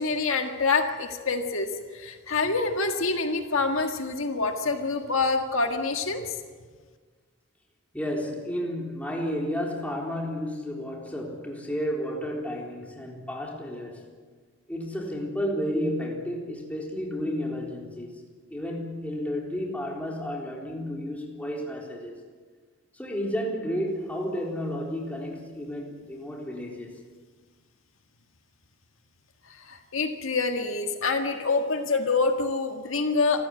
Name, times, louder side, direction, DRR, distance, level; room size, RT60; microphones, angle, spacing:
voice 1, 0.0-6.2 29.5-33.5, left 3 dB, 75° left, 5 dB, 1.7 m, -26 dB
voice 2, 7.9-14.0 14.7-18.2 18.5-22.2 22.9-27.0, equal, 5° left, -1 dB, 3.9 m, -32 dB
27.0 x 15.0 x 9.6 m, 1.5 s
head